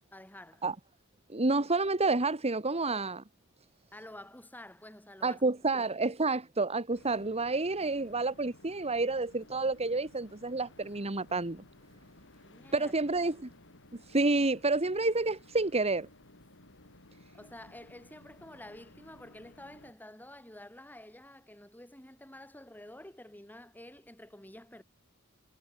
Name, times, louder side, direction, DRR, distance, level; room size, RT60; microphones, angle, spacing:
voice 1, 0.1-0.6 3.9-5.4 5.7-6.1 12.4-12.9 17.3-24.8, left 1 dB, 10° left, 6.3 m, -50 dB
voice 2, 1.3-3.2 5.2-11.6 12.7-13.5 13.9-16.1, right 3 dB, 30° right, 1.6 m, -29 dB
sound 1, 6.9-19.9, left 1 dB, 60° left, 8.0 m, -57 dB
head